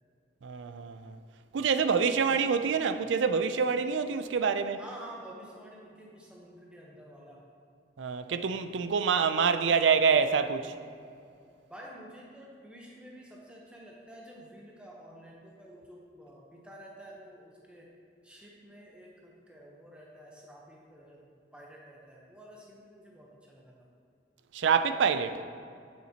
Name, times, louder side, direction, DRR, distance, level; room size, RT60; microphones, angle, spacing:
voice 1, 0.4-1.2 1.5-4.8 8.0-10.7 24.5-25.4, right 6 dB, 85° right, 10 dB, 0.4 m, -26 dB
voice 2, 1.5-3.0 4.8-7.4 11.7-17.9 18.2-23.9, right 1 dB, 5° right, -3 dB, 0.8 m, -50 dB
8.5 x 7.3 x 2.8 m, 2.4 s
head